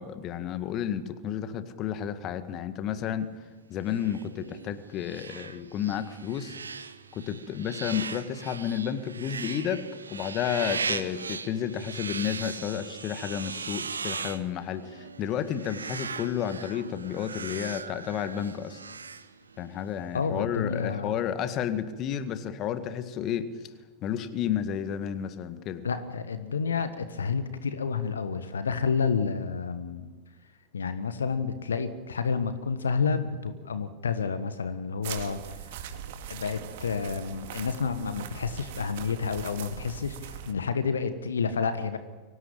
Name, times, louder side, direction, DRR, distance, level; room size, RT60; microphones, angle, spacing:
voice 1, 0.0-3.3 3.7-6.6 7.1-18.8 19.6-23.7 24.0-25.8, left 9 dB, 35° left, 11 dB, 1.9 m, -31 dB
sound 1, 3.9-19.8, right 5 dB, 75° right, 1.1 m, -39 dB
voice 2, 20.1-21.2 25.8-30.1 30.7-35.8 36.3-42.0, left 5 dB, 70° left, 11 dB, 1.4 m, -30 dB
sound 2, 35.0-40.5, right 9 dB, 55° right, 2.3 m, -41 dB
24.5 x 18.0 x 9.0 m, 1.3 s
figure-of-eight pair, 90°, 0 cm